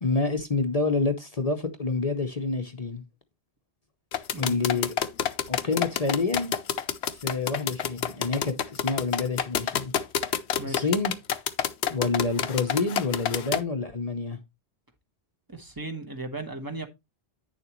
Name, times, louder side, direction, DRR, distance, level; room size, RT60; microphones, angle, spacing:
voice 1, 0.0-3.0 4.4-4.9 5.5-6.5 7.2-9.9 10.6-11.1 11.9-14.4, left 3 dB, 40° left, 0.8 m, -28 dB
sound 1, 4.1-13.6, left 9 dB, 80° left, 1.0 m, -28 dB
voice 2, 4.3-4.8 10.6-10.9 15.5-16.9, right 2 dB, 20° right, 1.2 m, -36 dB
9.5 x 6.9 x 3.0 m
omnidirectional pair, 1.1 m